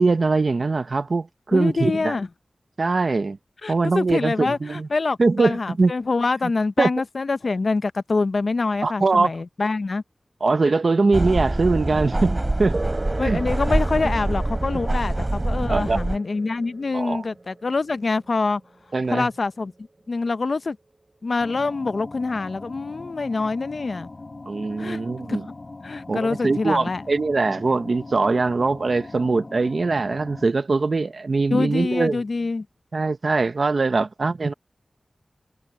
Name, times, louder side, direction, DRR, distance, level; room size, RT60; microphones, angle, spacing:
voice 1, 0.0-2.1 2.8-3.4 3.7-4.9 5.2-5.9 6.8-6.9 8.8-9.3 10.4-12.8 13.2-13.4 15.7-16.0 16.9-17.2 18.9-19.3 24.5-25.4 26.1-32.2 32.9-34.5, right 3 dB, 65° right, 0.8 m, -22 dB
voice 2, 1.5-2.3 3.6-10.0 13.2-18.6 19.1-20.8 21.2-24.1 24.8-25.0 25.3-25.4 25.8-27.0 31.5-32.7, left 3 dB, 65° left, 0.7 m, -25 dB
sound 1, 11.1-16.2, right 1 dB, 30° right, 3.0 m, -25 dB
sound 2, 12.7-20.7, right 2 dB, 45° right, 4.3 m, -39 dB
sound 3, 21.4-30.5, left 2 dB, 50° left, 2.6 m, -40 dB
wide cardioid pair, 55°, 0 cm